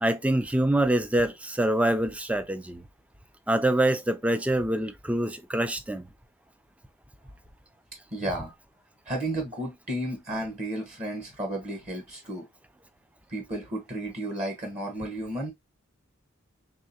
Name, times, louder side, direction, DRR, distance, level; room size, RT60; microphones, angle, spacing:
voice 1, 0.0-2.8 3.5-6.1, right 1 dB, 5° right, 0.3 m, -25 dB
voice 2, 8.1-8.5 9.0-12.4 13.3-15.5, right 1 dB, 35° right, 0.9 m, -33 dB
3.7 x 3.2 x 2.7 m
head